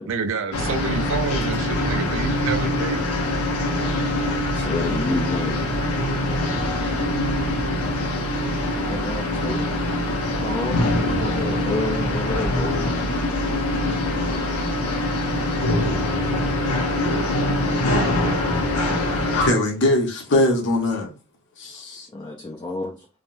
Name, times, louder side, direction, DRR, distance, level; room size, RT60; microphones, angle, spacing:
voice 1, 0.0-3.0 9.9-10.1, right 4 dB, 60° right, 0.4 m, -30 dB
sound 1, 0.5-19.5, left 1 dB, 85° left, 0.8 m, -23 dB
voice 2, 4.5-5.6 8.9-9.7 10.4-10.9 11.2-13.0 22.1-22.9, left 2 dB, 20° left, 0.3 m, -29 dB
voice 3, 19.3-21.1 21.6-22.1, left 1 dB, 55° left, 0.8 m, -21 dB
3.4 x 2.2 x 2.5 m
head